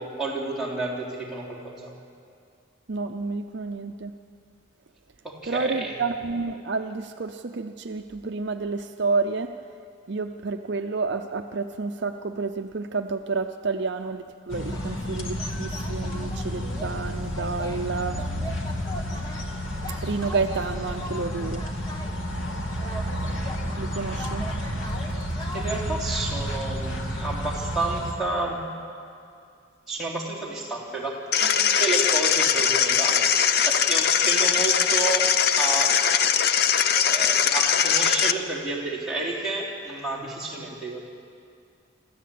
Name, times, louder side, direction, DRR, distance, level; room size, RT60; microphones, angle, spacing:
voice 1, 0.0-1.9 5.2-5.9 25.1-25.2 25.5-28.7 29.9-33.3 33.6-36.0 37.1-41.0, right 2 dB, ahead, -5 dB, 3.6 m, -30 dB
voice 2, 2.9-4.1 5.5-9.5 10.1-18.2 20.0-21.7 23.8-24.5, right 4 dB, 55° right, 7 dB, 0.6 m, -30 dB
sound 1, 14.5-28.1, equal, 75° left, 2.3 m, -31 dB
sound 2, 14.7-22.4 22.7-25.8, equal, 20° left, 1.6 m, -41 dB
sound 3, 31.3-38.3, left 8 dB, 50° left, 0.6 m, -21 dB
26.5 x 13.5 x 8.6 m, 2.4 s
head